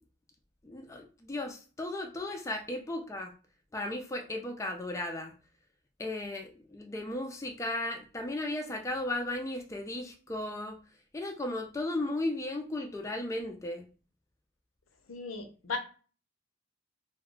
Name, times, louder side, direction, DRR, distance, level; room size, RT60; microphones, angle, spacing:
voice 1, 0.6-3.3 3.7-5.3 6.0-10.8 11.1-13.9, left 1 dB, 15° left, 3 dB, 0.3 m, -35 dB
voice 2, 15.1-15.8, left 4 dB, 90° left, 6 dB, 0.6 m, -36 dB
2.2 x 2.1 x 3.7 m, 0.37 s
head